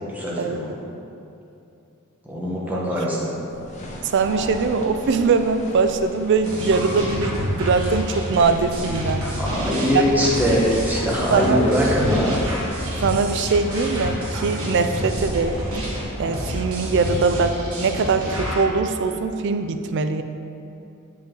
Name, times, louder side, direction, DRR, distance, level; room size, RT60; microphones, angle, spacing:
voice 1, 0.1-0.7 2.3-3.3 9.4-12.4, equal, 10° right, -6 dB, 1.2 m, -22 dB
sound 1, 3.5-16.9, equal, 35° left, 1.1 m, -38 dB
voice 2, 4.0-9.3 9.9-10.0 11.3-11.7 13.0-15.6 16.2-20.2, right 4 dB, 60° right, 8 dB, 0.4 m, -22 dB
sound 2, 6.4-18.7, equal, 85° right, 1.4 m, -28 dB
7.1 x 4.9 x 3.7 m, 2.7 s
head